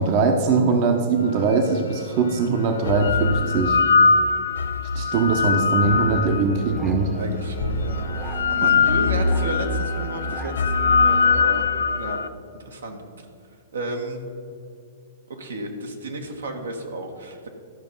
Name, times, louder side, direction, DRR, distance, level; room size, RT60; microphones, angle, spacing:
voice 1, 0.0-3.8 4.9-7.1, right 4 dB, 45° right, 4 dB, 1.0 m, -21 dB
sound 1, 1.5-1.6 2.6-6.8 7.6-12.3, left 5 dB, 80° left, 0.5 m, -22 dB
Musical instrument, 5.8-11.5, right 3 dB, 10° right, 0.9 m, -33 dB
voice 2, 7.1-11.7 12.0-12.2 12.6-13.2 13.7-14.2 15.3-17.5, right 2 dB, 85° right, 2 dB, 1.4 m, -32 dB
13.0 x 5.2 x 5.6 m, 2.5 s
hypercardioid pair, 120°, 0 cm